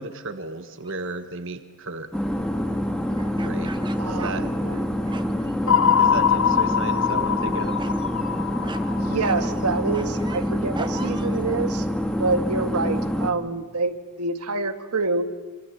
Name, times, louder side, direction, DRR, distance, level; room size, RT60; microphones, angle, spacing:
voice 1, 0.0-2.1 3.4-3.7 4.1-4.4 6.0-7.8, right 3 dB, 60° right, 8 dB, 1.4 m, -34 dB
sound 1, 0.8-1.1 3.2-4.8 5.1-5.6 6.0-6.5 6.8-7.1 7.8-8.0 8.6-8.8 9.2-11.4, right 3 dB, 20° right, 1.3 m, -40 dB
sound 2, 2.1-13.3, equal, 5° left, 1.9 m, -26 dB
voice 2, 4.0-4.8 9.0-11.8 12.2-15.3, right 3 dB, 90° right, 8 dB, 1.8 m, -27 dB
sound 3, 5.7-9.9, left 8 dB, 65° left, 0.9 m, -23 dB
27.5 x 26.0 x 8.1 m, 1.3 s
head